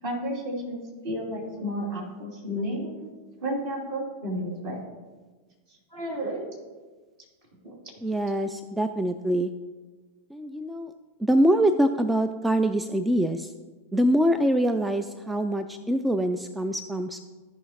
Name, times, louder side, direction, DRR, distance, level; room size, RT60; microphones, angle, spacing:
voice 1, 0.0-3.1 3.4-4.8 5.7-6.5 7.6-7.8 15.2-15.4, equal, 55° right, -3 dB, 3.0 m, -32 dB
voice 2, 8.0-9.5 10.3-10.9 11.2-13.5 13.9-17.2, right 1 dB, 5° right, 9 dB, 0.4 m, -24 dB
16.0 x 5.5 x 3.0 m, 1.4 s
figure-of-eight pair, 90°, 0 cm